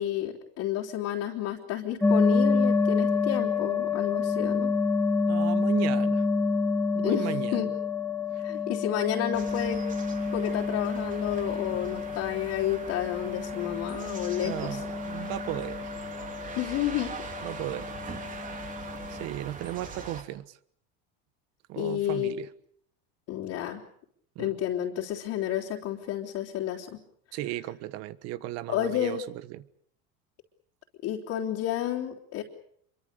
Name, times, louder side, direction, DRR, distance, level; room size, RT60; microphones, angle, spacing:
voice 1, 0.0-4.7 7.0-7.7 8.4-9.8 10.3-14.8 16.6-17.1 21.7-22.3 23.3-23.8 24.4-27.0 28.7-29.2 31.0-32.4, left 11 dB, 55° left, 3.3 m, -31 dB
sound 1, 2.0-19.3, left 4 dB, 5° left, 0.9 m, -28 dB
voice 2, 5.3-6.3 6.9-7.7 8.3-8.4 14.4-15.9 17.4-18.0 19.1-20.6 21.7-22.5 24.3-24.6 27.3-29.6, right 14 dB, 60° right, 1.4 m, -36 dB
sound 2, 9.3-20.2, right 5 dB, 25° right, 3.2 m, -42 dB
27.0 x 23.5 x 6.7 m
cardioid pair, 135°, 29 cm